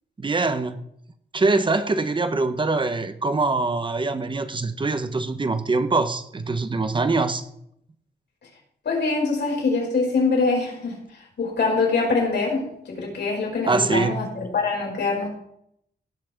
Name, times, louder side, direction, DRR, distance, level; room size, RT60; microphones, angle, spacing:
voice 1, 0.2-0.8 1.3-7.4 13.7-14.2, right 3 dB, 25° right, 10 dB, 1.0 m, -23 dB
voice 2, 8.8-11.0 11.4-15.3, left 3 dB, 70° left, -1 dB, 5.0 m, -24 dB
17.0 x 5.9 x 5.9 m, 0.72 s
wide cardioid pair, 160°, 18 cm